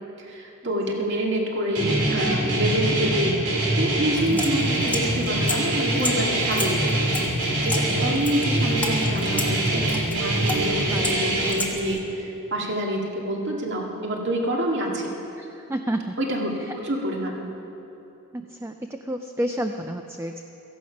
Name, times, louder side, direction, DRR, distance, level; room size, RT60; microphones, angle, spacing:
voice 1, 0.2-3.4 3.8-7.0 7.6-9.8 10.1-15.1 16.2-16.5 16.8-17.4, right 1 dB, 50° right, -1 dB, 2.2 m, -27 dB
Guitar, 1.7-11.5, right 1 dB, 80° right, 3.0 m, -24 dB
sound 1, 4.1-12.0, left 2 dB, 5° left, 1.2 m, -34 dB
voice 2, 15.4-16.2 16.6-16.8 18.3-20.4, right 1 dB, 10° right, 6 dB, 0.4 m, -30 dB
16.5 x 14.5 x 5.8 m, 2.9 s
head